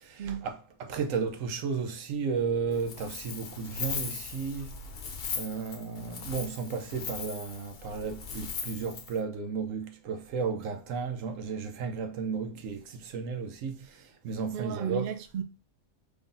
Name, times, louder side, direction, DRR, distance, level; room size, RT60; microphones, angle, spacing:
voice 1, 0.0-4.8 5.4-13.9 14.2-15.2, right 5 dB, 85° right, 1.1 m, -33 dB
Wind, 2.7-9.2, left 5 dB, 55° left, 0.8 m, -39 dB
voice 2, 14.5-15.4, right 9 dB, 60° right, 0.6 m, -33 dB
3.7 x 3.3 x 2.6 m
omnidirectional pair, 1.3 m